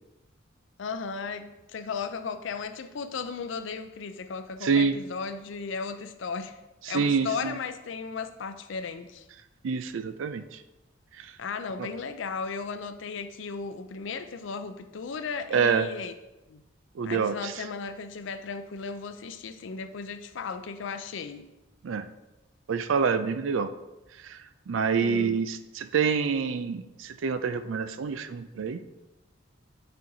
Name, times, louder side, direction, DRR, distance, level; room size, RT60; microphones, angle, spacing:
voice 1, 0.8-6.6 6.9-9.2 11.4-16.1 16.5-16.6 17.0-21.5 25.0-25.4, left 5 dB, 70° left, 0.4 m, -35 dB
voice 2, 4.6-5.0 6.9-7.6 9.6-10.6 11.2-11.3 11.8-11.9 15.5-15.9 17.0-17.5 21.8-22.1 22.7-23.7 24.2-24.4 24.7-28.8, right 5 dB, 80° right, 0.4 m, -27 dB
8.8 x 4.3 x 2.7 m
head